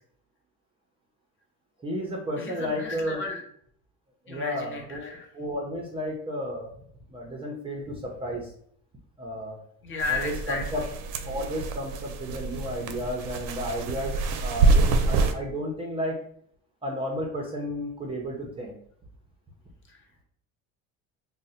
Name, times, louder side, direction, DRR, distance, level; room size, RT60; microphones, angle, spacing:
voice 1, 1.8-3.2 4.3-6.7 7.1-8.5 9.2-9.6 10.1-10.8 11.2-16.2 16.8-18.8, equal, 15° right, -1 dB, 0.5 m, -32 dB
voice 2, 2.4-3.4 4.3-5.3 9.8-10.6 19.9-20.2, left 4 dB, 35° left, 1 dB, 0.8 m, -34 dB
sound 1, 10.0-15.3, right 3 dB, 70° right, 0.5 m, -26 dB
2.6 x 2.1 x 3.9 m, 0.63 s
cardioid pair, 135°, 33 cm